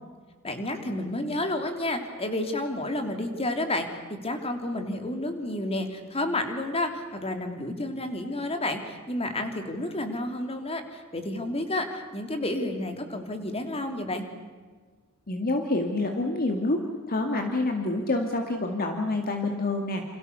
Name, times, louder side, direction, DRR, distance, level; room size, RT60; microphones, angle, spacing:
voice 1, 0.4-14.3, left 1 dB, 25° left, 5 dB, 3.2 m, -30 dB
voice 2, 15.3-20.0, left 2 dB, 45° left, 3 dB, 2.2 m, -27 dB
29.0 x 27.5 x 6.9 m, 1.5 s
head